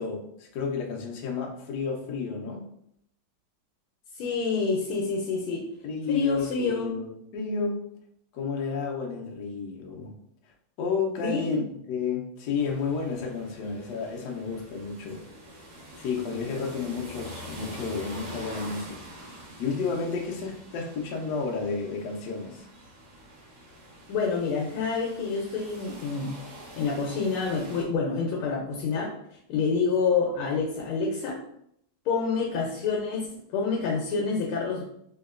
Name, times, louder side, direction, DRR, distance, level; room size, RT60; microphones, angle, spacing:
voice 1, 0.0-2.6 5.8-7.8 8.3-10.1 10.8-11.6 11.9-15.2 16.0-19.0 19.6-22.6, left 5 dB, 70° left, 0 dB, 1.1 m, -31 dB
voice 2, 4.1-5.6 6.1-6.9 11.2-11.6 24.1-26.4 26.7-29.1 29.5-31.4 32.1-34.8, left 4 dB, 85° left, -2 dB, 1.5 m, -27 dB
sound 1, 12.6-27.8, equal, 55° right, 1.4 m, -45 dB
3.6 x 2.8 x 2.4 m, 0.72 s
omnidirectional pair, 2.3 m